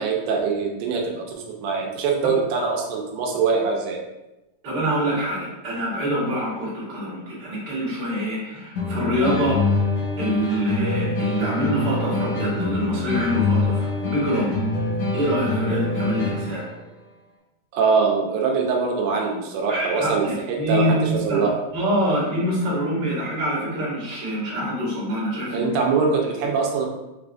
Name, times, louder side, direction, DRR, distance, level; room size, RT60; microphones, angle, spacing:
voice 1, 0.0-4.0 17.7-21.5 25.5-26.9, right 5 dB, 85° right, 0 dB, 2.1 m, -23 dB
voice 2, 4.6-9.7 10.2-14.6 15.1-16.6 19.7-21.4 21.7-25.8, equal, 50° right, -7 dB, 1.4 m, -25 dB
sound 1, 8.8-16.7, left 2 dB, 85° left, 2.7 m, -25 dB
6.1 x 2.4 x 2.4 m, 1.0 s
omnidirectional pair, 3.7 m